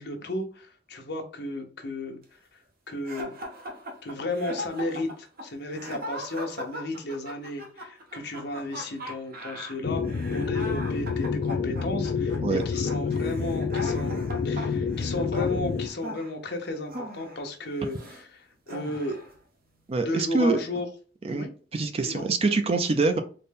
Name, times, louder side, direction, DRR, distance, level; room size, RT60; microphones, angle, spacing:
voice 1, 0.0-2.6 2.9-3.3 4.0-10.0 10.3-19.2 20.0-20.9 21.3-21.5 22.0-22.2, left 2 dB, 60° left, 3 dB, 0.9 m, -34 dB
sound 1, 3.0-18.2 18.7-19.3, equal, 55° right, 0.9 m, -39 dB
sound 2, 9.8-15.9, left 5 dB, 45° left, 0.3 m, -28 dB
voice 2, 19.9-20.6 21.2-21.5 21.7-23.2, right 3 dB, 30° right, 7 dB, 0.4 m, -24 dB
4.1 x 2.1 x 3.5 m, 0.39 s
head